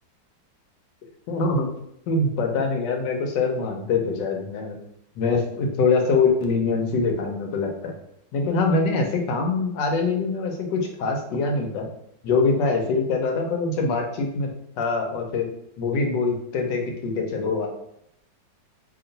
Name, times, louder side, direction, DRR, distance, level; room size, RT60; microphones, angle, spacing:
voice 1, 1.3-1.7 2.1-4.8 5.2-7.9 8.3-11.9 12.2-14.5 14.8-15.5 15.8-17.7, left 4 dB, 75° left, 2 dB, 1.3 m, -24 dB
3.0 x 2.7 x 3.9 m, 0.76 s
omnidirectional pair, 2.0 m